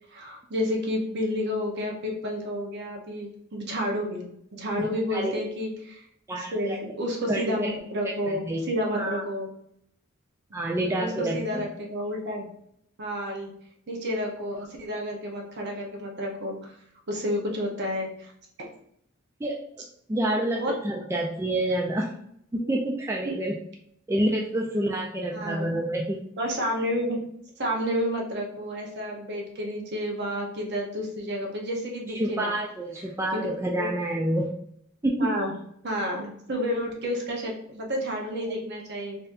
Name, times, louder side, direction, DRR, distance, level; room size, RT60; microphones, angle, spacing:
voice 1, 0.1-6.0 6.3-9.5 10.5-12.5 13.0-13.5 13.9-16.7 17.1-18.3 20.6-20.7 22.5-22.7 23.2-23.4 25.3-25.7 26.4-27.2 27.6-32.5 33.3-33.5 33.7-33.9 35.2-35.5 35.8-39.2, equal, 55° right, 0 dB, 0.8 m, -30 dB
voice 2, 4.8-5.4 6.3-6.8 7.3-7.7 8.2-8.6 8.9-9.2 10.5-11.6 19.4-19.6 20.1-22.1 22.5-23.6 24.1-26.2 32.1-34.5 35.0-35.3, right 1 dB, 15° right, -2 dB, 0.3 m, -28 dB
4.0 x 2.7 x 2.5 m, 0.70 s
head